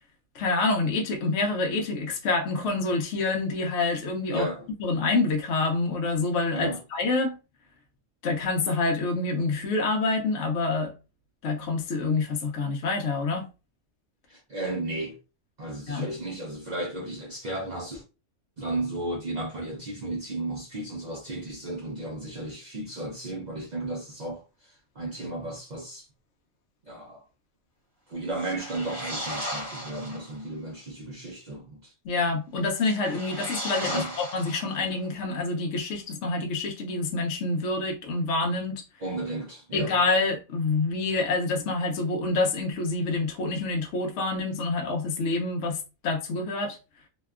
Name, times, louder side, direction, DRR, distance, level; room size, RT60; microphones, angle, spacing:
voice 1, 0.3-4.5 4.8-7.4 8.2-10.9 11.4-13.5 15.9-16.1 32.0-38.8 39.7-46.8, left 3 dB, 65° left, 0.8 m, -27 dB
voice 2, 4.3-4.7 6.5-6.8 14.3-15.2 15.6-18.0 18.6-26.1 26.8-27.2 28.1-31.9 33.8-34.1 39.0-39.9, right 2 dB, 85° right, 0.3 m, -34 dB
sound 1, 28.3-30.4 32.7-35.1, equal, 30° right, 0.8 m, -36 dB
2.8 x 2.2 x 2.3 m
omnidirectional pair, 1.5 m